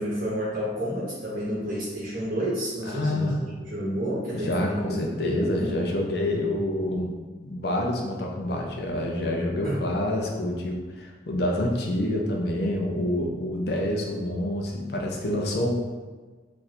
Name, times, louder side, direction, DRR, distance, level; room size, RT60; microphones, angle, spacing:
voice 1, 0.0-3.3 3.7-5.7 9.6-9.8, equal, 50° right, -8 dB, 0.9 m, -30 dB
voice 2, 2.9-3.4 4.3-15.7, left 1 dB, 55° left, 0 dB, 0.5 m, -27 dB
3.2 x 2.5 x 4.2 m, 1.3 s
head